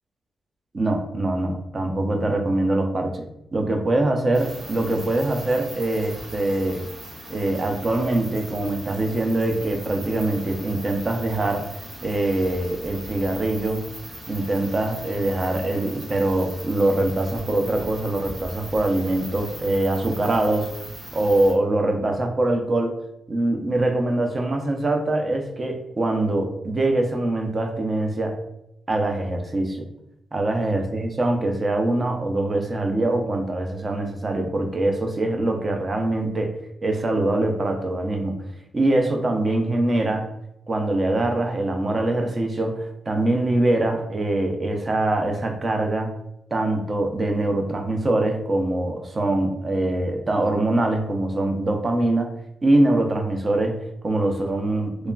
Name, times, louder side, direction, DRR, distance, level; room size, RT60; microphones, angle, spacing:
voice 1, 0.7-3.2 3.5-6.8 7.3-13.9 14.3-20.8 21.1-23.0 23.3-28.4 28.9-29.9 30.3-38.4 38.7-40.3 40.7-46.1 46.5-52.3 52.6-55.1, right 2 dB, 35° right, 3 dB, 0.4 m, -23 dB
sound 1, 4.3-21.5, right 1 dB, 65° right, 1.3 m, -40 dB
3.0 x 2.3 x 2.2 m, 0.82 s
cardioid pair, 110°, 0 cm